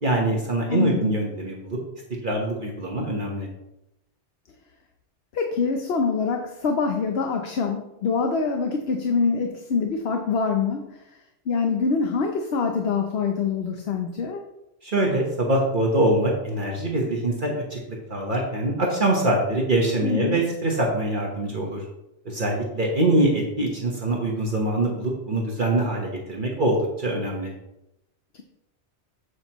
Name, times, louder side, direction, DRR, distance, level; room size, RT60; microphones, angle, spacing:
voice 1, 0.0-1.8 2.2-3.5 14.8-17.8 18.1-21.9 22.2-27.5, right 1 dB, 45° right, -2 dB, 1.4 m, -24 dB
voice 2, 0.7-1.2 5.3-10.8 11.5-14.4 20.0-20.4, left 5 dB, 65° left, 4 dB, 1.0 m, -25 dB
8.0 x 8.0 x 3.0 m, 0.89 s
omnidirectional pair, 1.2 m